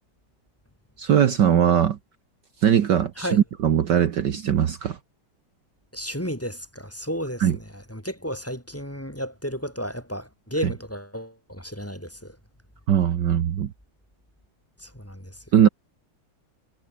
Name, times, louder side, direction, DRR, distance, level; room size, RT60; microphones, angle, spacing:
voice 1, 1.0-2.0 2.6-5.0 7.4-7.6 12.9-13.7 15.5-15.7, right 9 dB, 60° right, 1.7 m, -20 dB
voice 2, 5.9-12.4 14.8-15.4, equal, 5° left, 4.4 m, -33 dB
omnidirectional pair, 2.2 m